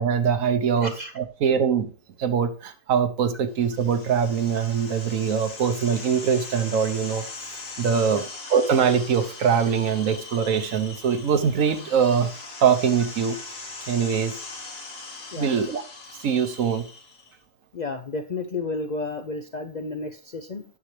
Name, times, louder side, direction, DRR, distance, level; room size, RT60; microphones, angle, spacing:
voice 1, 0.0-1.9 2.2-7.2 7.8-8.2 8.5-12.3 12.6-13.4 13.9-14.3 15.3-15.8 16.2-16.9, right 7 dB, 75° right, 1.3 m, -23 dB
voice 2, 0.8-1.1 8.1-8.2 15.3-15.6 17.7-20.6, left 3 dB, 50° left, 0.5 m, -32 dB
sound 1, 3.6-17.3, left 3 dB, 85° left, 2.2 m, -40 dB
9.5 x 6.5 x 3.2 m
omnidirectional pair, 1.4 m